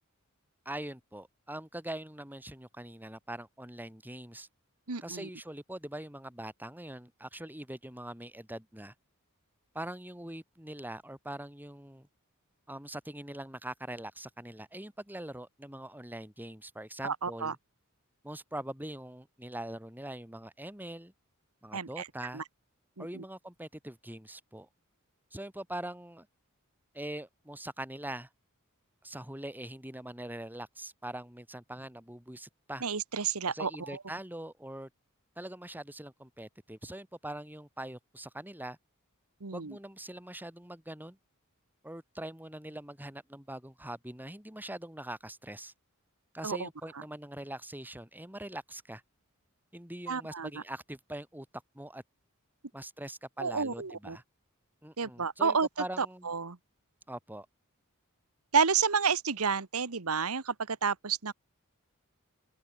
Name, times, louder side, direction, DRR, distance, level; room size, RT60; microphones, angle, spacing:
voice 1, 0.6-4.5 5.0-8.9 9.7-12.1 12.7-17.6 18.2-21.1 21.6-22.4 23.0-24.7 25.3-26.3 26.9-28.3 29.0-32.8 33.5-34.9 35.4-38.8 39.5-41.2 41.8-45.7 46.3-49.0 49.7-51.5 51.7-52.0 52.7-54.2 54.8-56.3 57.1-57.5, right 1 dB, 10° right, 6.0 m, -42 dB
voice 2, 4.9-5.3 17.0-17.5 21.7-22.1 22.3-22.4 23.0-23.2 32.8-34.0 39.4-39.7 46.4-46.7 50.1-50.6 53.4-54.2 55.0-55.7 56.0-56.6 58.5-61.3, right 5 dB, 80° right, 1.4 m, -30 dB
open air
head